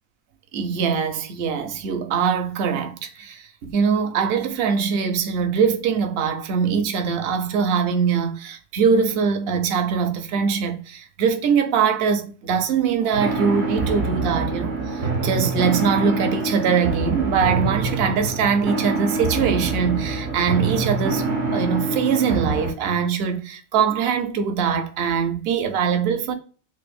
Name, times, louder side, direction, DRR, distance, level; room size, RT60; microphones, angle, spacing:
voice 1, 0.5-21.3 21.5-26.3, right 6 dB, 65° right, 0.7 m, -22 dB
sound 1, 13.1-22.7, right 3 dB, 85° right, 1.3 m, -25 dB
4.7 x 2.1 x 2.4 m
omnidirectional pair, 1.3 m